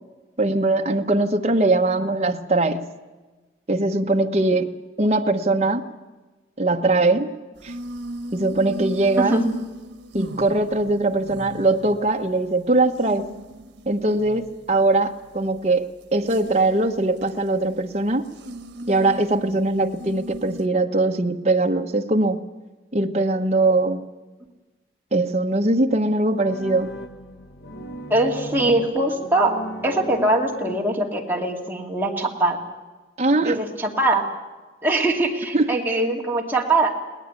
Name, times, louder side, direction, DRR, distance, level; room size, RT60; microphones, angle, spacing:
voice 1, 0.4-2.9 3.7-4.7 5.0-5.8 6.6-7.3 7.6-7.7 8.3-9.4 10.1-13.3 13.9-18.2 18.9-22.4 22.9-24.0 25.1-26.9 33.2-33.6 35.5-35.7, right 2 dB, 35° right, 3 dB, 1.1 m, -21 dB
sound 1, 7.6-20.7, right 1 dB, 85° right, 1.1 m, -38 dB
sound 2, 26.4-31.3, equal, 65° left, 1.3 m, -37 dB
voice 2, 28.1-29.5 29.8-32.6 33.4-34.3 34.8-36.9, right 2 dB, 10° right, -1 dB, 2.5 m, -22 dB
22.0 x 18.0 x 8.4 m, 1.2 s
head